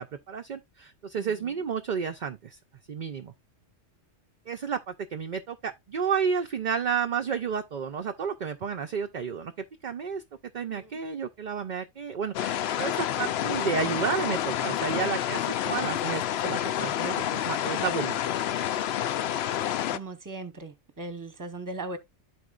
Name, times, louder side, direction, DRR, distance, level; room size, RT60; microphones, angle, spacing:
voice 1, 0.0-2.6 2.9-3.3 4.5-9.5 9.8-10.2 10.5-18.2, right 6 dB, 50° right, 0.6 m, -31 dB
voice 2, 1.2-1.5 10.7-11.0 15.7-15.9 19.9-22.0, right 2 dB, 15° right, 1.0 m, -39 dB
sound 1, 12.3-20.0, left 11 dB, 65° left, 0.8 m, -29 dB
12.5 x 4.3 x 2.4 m
omnidirectional pair, 1.2 m